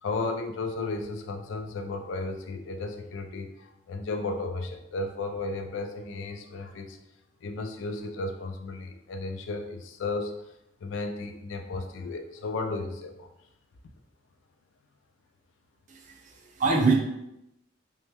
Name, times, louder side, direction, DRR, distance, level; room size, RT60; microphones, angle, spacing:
voice 1, 0.0-7.0 7.4-10.3 10.8-13.3, left 3 dB, 75° left, 5 dB, 0.4 m, -34 dB
voice 2, 15.9-16.9, right 4 dB, 40° right, 0 dB, 0.4 m, -25 dB
3.0 x 2.1 x 3.3 m, 0.86 s
head